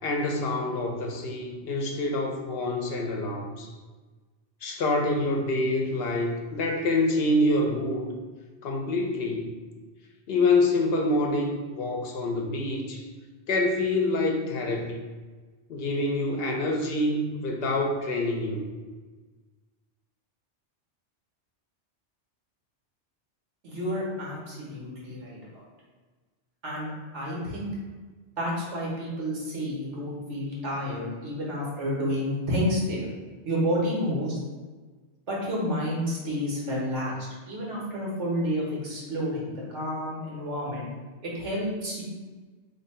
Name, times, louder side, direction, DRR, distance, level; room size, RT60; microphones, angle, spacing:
voice 1, 0.0-3.7 4.6-8.1 8.6-9.5 10.3-13.1 13.5-15.0 15.7-18.6, left 2 dB, 65° left, 2 dB, 0.7 m, -26 dB
voice 2, 23.6-25.6 26.6-27.7 28.4-33.1 33.4-34.4 35.3-40.9 41.2-42.0, equal, 90° right, -4 dB, 1.5 m, -30 dB
2.9 x 2.7 x 4.2 m, 1.4 s
omnidirectional pair, 1.2 m